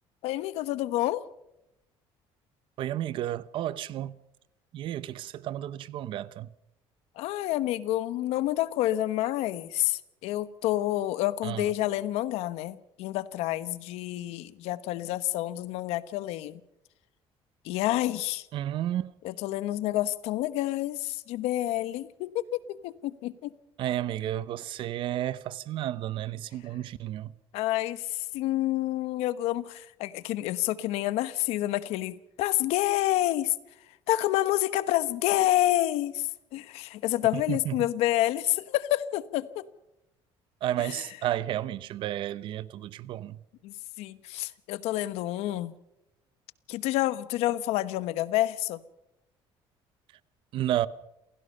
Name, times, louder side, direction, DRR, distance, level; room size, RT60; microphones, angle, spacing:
voice 1, 0.2-1.2 7.2-16.6 17.6-18.5 19.2-23.5 27.5-33.5 34.1-39.7 40.8-41.1 43.6-45.7 46.7-48.8, left 15 dB, 85° left, 1.1 m, -28 dB
voice 2, 2.8-4.1 4.7-6.5 11.4-11.7 18.5-19.1 23.8-27.3 37.5-37.8 40.6-43.4 50.5-50.9, right 12 dB, 55° right, 0.9 m, -32 dB
28.0 x 16.5 x 5.5 m
cardioid pair, 165°, 10 cm